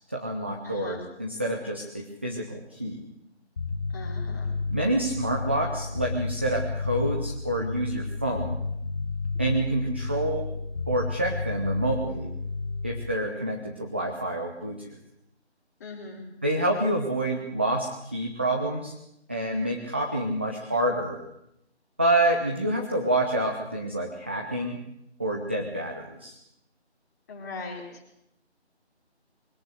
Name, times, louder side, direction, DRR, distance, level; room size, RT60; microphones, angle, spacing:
voice 1, 0.1-3.0 4.7-8.6 9.4-10.5 10.9-12.3 12.8-15.0 16.4-18.9 19.3-21.2 22.0-24.8 25.2-26.4, right 1 dB, 10° right, 1 dB, 0.9 m, -28 dB
voice 2, 0.6-1.0 3.9-4.5 15.8-16.3 27.3-28.0, left 3 dB, 15° left, -1 dB, 4.4 m, -40 dB
Bass guitar, 3.6-13.2, left 3 dB, 30° left, 7.0 m, -32 dB
23.0 x 17.5 x 8.2 m, 0.79 s
figure-of-eight pair, 160°, 34 cm